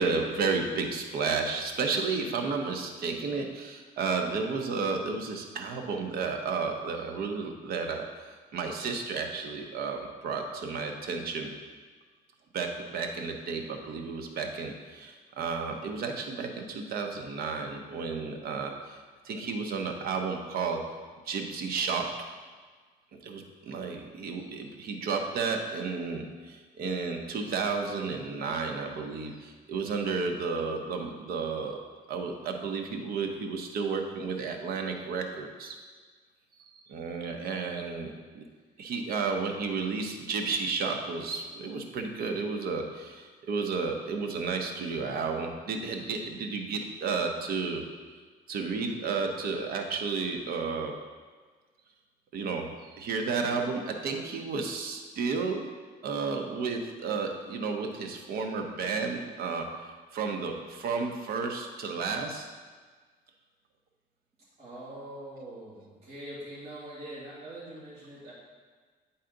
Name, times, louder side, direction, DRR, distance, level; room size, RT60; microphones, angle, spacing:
voice 1, 0.0-8.1 8.5-11.5 12.5-19.0 19.2-20.8 21.3-22.1 23.2-31.8 32.1-35.7 36.9-38.4 38.8-47.8 48.5-51.0 52.3-55.6 56.0-59.7 60.1-62.5, right 4 dB, 65° right, 4 dB, 0.9 m, -32 dB
voice 2, 64.6-68.3, right 1 dB, 40° right, -10 dB, 2.2 m, -43 dB
8.8 x 4.1 x 3.9 m, 1.5 s
cardioid pair, 110°, 17 cm